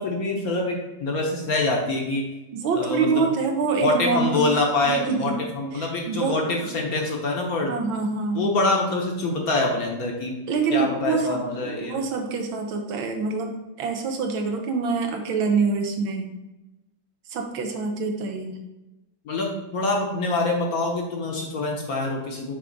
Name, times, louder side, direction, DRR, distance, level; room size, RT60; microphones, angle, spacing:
voice 1, 0.0-2.2 2.7-3.2 3.8-7.7 8.3-10.4 10.7-12.0 19.2-22.6, left 2 dB, 55° left, 0 dB, 1.2 m, -25 dB
voice 2, 2.5-4.4 4.8-5.4 5.8-6.7 7.7-8.5 10.5-16.3 17.3-18.6, right 4 dB, 80° right, 3 dB, 1.7 m, -26 dB
6.2 x 3.6 x 5.2 m, 1.0 s
omnidirectional pair, 2.2 m